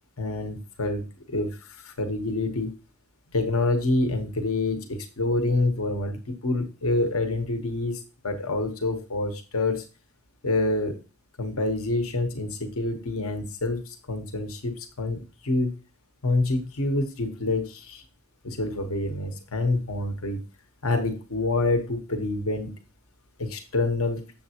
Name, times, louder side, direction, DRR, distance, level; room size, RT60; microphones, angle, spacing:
voice 1, 0.2-2.7 3.3-9.8 10.4-11.0 11.4-15.8 16.2-18.0 18.4-20.4 20.8-22.7 23.4-24.3, left 2 dB, 75° left, 6 dB, 1.0 m, -27 dB
7.2 x 7.1 x 2.8 m, 0.33 s
head